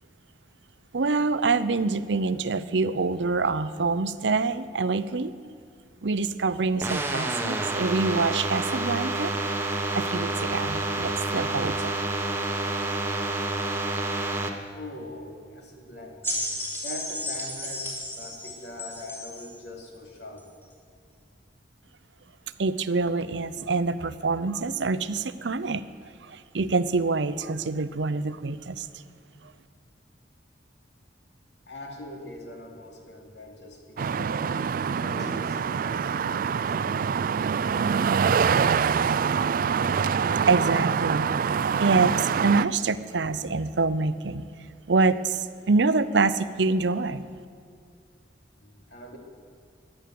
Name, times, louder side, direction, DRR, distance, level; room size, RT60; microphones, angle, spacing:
voice 1, 0.9-5.3 6.0-9.3 9.9-11.9 22.6-25.8 26.5-28.8 40.5-41.3 41.8-42.1 42.4-44.4 44.9-45.4 45.7-47.2, right 3 dB, 85° right, 14 dB, 0.7 m, -25 dB
sound 1, 6.8-14.5, right 2 dB, 15° right, 1.2 m, -28 dB
voice 2, 14.7-16.5 16.8-20.5 31.7-34.6 34.9-36.8 48.6-49.2, left 1 dB, 70° left, 1 dB, 2.9 m, -42 dB
sound 2, 16.2-19.5 20.4-20.5, left 1 dB, 15° left, 3.4 m, -33 dB
sound 3, 34.0-42.6, right 6 dB, 50° right, 0.3 m, -25 dB
16.0 x 11.0 x 7.8 m, 2.3 s
head